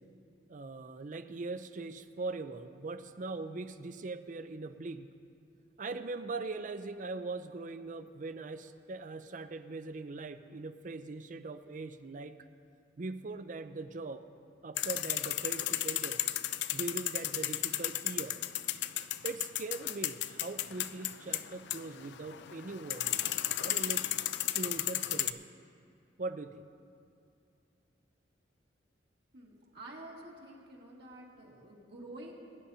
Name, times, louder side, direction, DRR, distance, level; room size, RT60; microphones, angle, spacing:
voice 1, 0.5-5.1 5.8-12.4 13.0-14.2 14.6-16.2 16.7-18.4 19.2-23.2 23.6-24.1 24.5-25.5 26.2-26.7, right 3 dB, 45° right, 10 dB, 0.5 m, -41 dB
sound 1, 14.8-25.3, left 13 dB, 65° left, 0.4 m, -34 dB
voice 2, 29.3-32.3, right 1 dB, 60° right, -3 dB, 1.9 m, -49 dB
21.5 x 10.0 x 2.8 m, 2.4 s
head